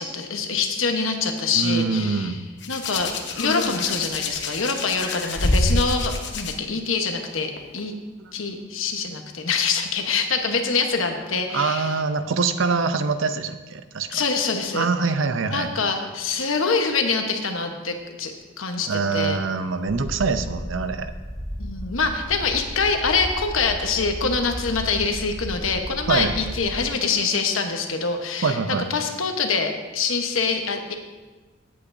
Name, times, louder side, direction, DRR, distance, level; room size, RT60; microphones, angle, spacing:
voice 1, 0.0-2.4 2.7-7.9 8.3-11.9 14.1-14.9 15.5-19.4 21.6-31.0, left 4 dB, 85° left, 4 dB, 1.1 m, -25 dB
voice 2, 1.5-2.4 8.2-8.3 11.5-14.2 14.7-15.7 18.9-21.1 26.1-26.3 28.4-28.9, right 4 dB, 75° right, 10 dB, 0.6 m, -24 dB
Hands, 2.6-6.5 7.6-7.8, left 2 dB, 60° left, 1.0 m, -26 dB
sound 1, 19.9-26.9, equal, 5° left, 0.7 m, -34 dB
16.5 x 8.5 x 2.7 m, 1.3 s
head